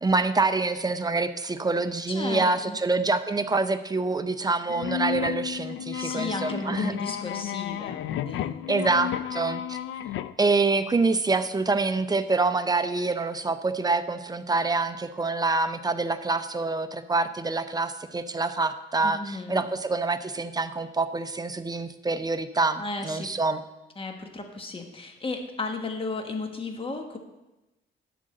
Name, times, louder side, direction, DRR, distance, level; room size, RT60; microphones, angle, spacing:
voice 1, 0.0-6.9 8.7-9.8 10.4-23.6, right 3 dB, 20° right, 10 dB, 0.6 m, -26 dB
voice 2, 2.1-2.8 6.0-8.5 19.0-19.7 22.8-23.3 24.0-27.2, left 3 dB, 25° left, 4 dB, 1.4 m, -34 dB
sound 1, 4.7-10.3, left 10 dB, 85° left, 0.4 m, -32 dB
11.0 x 3.9 x 7.6 m, 1.0 s
cardioid pair, 90°, 20 cm